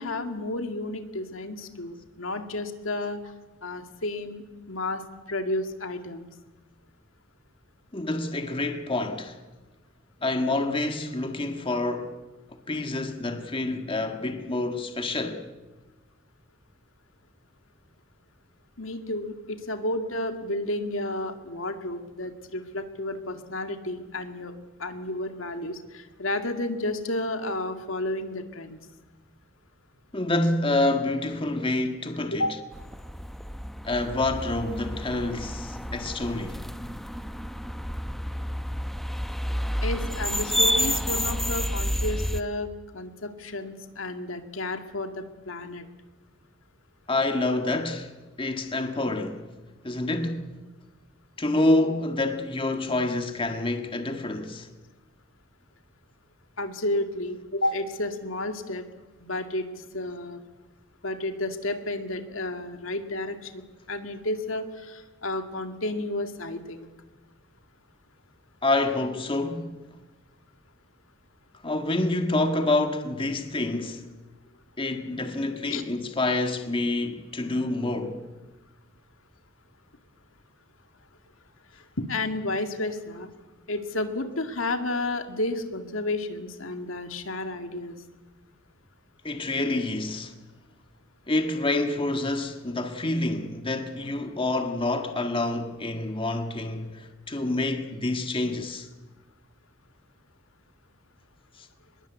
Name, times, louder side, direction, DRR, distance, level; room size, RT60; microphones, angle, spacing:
voice 1, 0.0-3.3 3.6-6.3 18.8-24.5 24.8-28.8 32.4-32.5 39.8-45.9 56.6-58.9 59.2-60.4 61.0-66.9 75.7-75.8 81.7-83.3 83.7-88.0, left 2 dB, 75° left, 2.2 m, -31 dB
voice 2, 7.9-9.4 10.2-12.2 12.7-15.4 30.1-32.4 33.8-36.6 47.1-48.1 48.4-49.4 49.8-50.5 51.4-54.7 68.6-69.7 71.6-74.0 74.8-78.2 89.2-90.3 91.3-98.9, left 2 dB, 25° left, 1.7 m, -27 dB
sound 1, 32.7-42.4, equal, ahead, 0.8 m, -30 dB
24.0 x 21.5 x 8.3 m
head